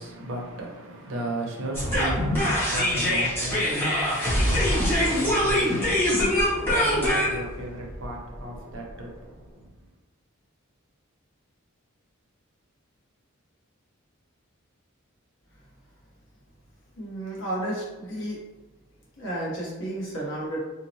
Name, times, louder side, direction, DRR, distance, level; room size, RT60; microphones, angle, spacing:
voice 1, 0.0-9.9, right 1 dB, 60° right, -1 dB, 0.5 m, -36 dB
sound 1, 1.7-8.9, left 1 dB, 10° left, 0.6 m, -24 dB
voice 2, 16.9-18.4 19.2-20.6, right 1 dB, 65° left, -4 dB, 0.8 m, -32 dB
2.6 x 2.0 x 2.6 m, 1.2 s
head